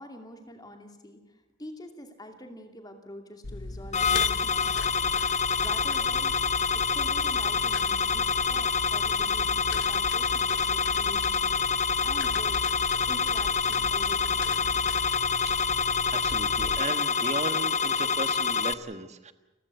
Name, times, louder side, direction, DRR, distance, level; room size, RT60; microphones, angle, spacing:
voice 1, 0.0-5.1 5.6-11.7 12.0-14.7, left 1 dB, 20° left, 5 dB, 2.5 m, -45 dB
sound 1, 3.4-16.8, left 3 dB, 60° left, 0.9 m, -39 dB
sound 2, 3.9-18.7, left 5 dB, 35° left, 0.8 m, -26 dB
voice 2, 16.1-19.3, right 2 dB, 35° right, 10 dB, 1.5 m, -36 dB
30.0 x 16.0 x 8.3 m, 1.1 s
head